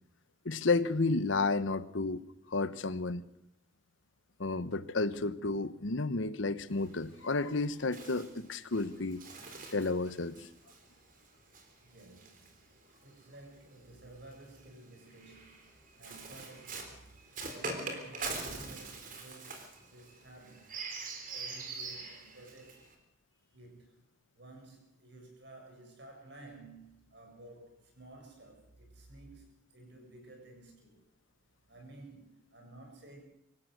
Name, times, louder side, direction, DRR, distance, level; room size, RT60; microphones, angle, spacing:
voice 1, 0.4-2.2 2.5-3.2 4.4-9.2 9.7-10.5, left 3 dB, 75° left, 1.0 m, -31 dB
Bird, 6.7-13.2 14.1-22.9, right 3 dB, 45° right, 3.6 m, -44 dB
voice 2, 11.8-12.7 13.0-17.0 17.5-20.8 21.3-22.9 23.5-24.0 24.4-31.0 31.7-33.2, right 2 dB, 60° right, 7.6 m, -54 dB
25.5 x 15.5 x 6.6 m
head